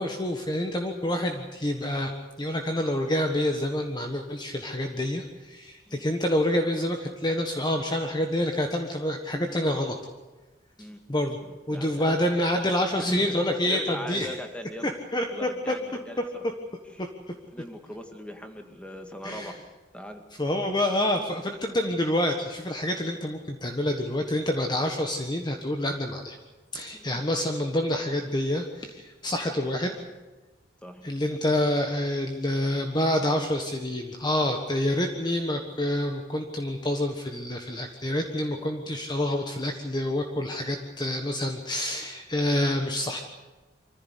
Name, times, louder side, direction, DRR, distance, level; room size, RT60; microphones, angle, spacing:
voice 1, 0.0-2.1 2.4-9.9 11.1-11.4 11.7-14.3 14.8-15.7 17.0-17.1 19.2-19.5 20.4-26.4 26.7-30.0 31.0-43.2, left 1 dB, 25° left, 4 dB, 1.4 m, -27 dB
voice 2, 11.7-12.1 12.5-14.9 15.3-16.2 17.0-17.1 17.5-19.6 19.9-20.2 26.9-27.2 30.8-31.1, equal, 5° left, 5 dB, 2.1 m, -39 dB
24.5 x 15.0 x 8.4 m, 1.2 s
head